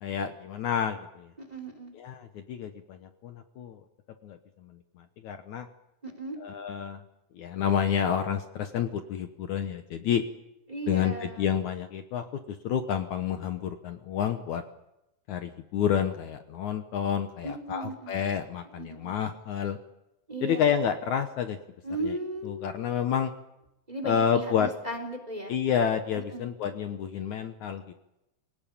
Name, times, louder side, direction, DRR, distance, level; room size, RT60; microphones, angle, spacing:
voice 1, 0.0-1.3 1.9-3.8 4.2-4.7 5.0-5.7 6.4-7.0 7.3-10.2 10.9-14.6 15.3-19.8 20.4-21.6 22.0-22.2 22.4-23.3 24.0-24.7 25.5-27.9, left 8 dB, 65° left, 7 dB, 2.3 m, -29 dB
voice 2, 1.4-1.9 6.0-6.4 10.7-11.5 17.4-18.2 18.8-19.1 20.3-20.7 21.8-22.8 23.9-25.5 26.1-26.5, right 1 dB, 10° right, 6 dB, 3.5 m, -36 dB
25.5 x 18.5 x 8.7 m, 0.89 s
omnidirectional pair, 3.9 m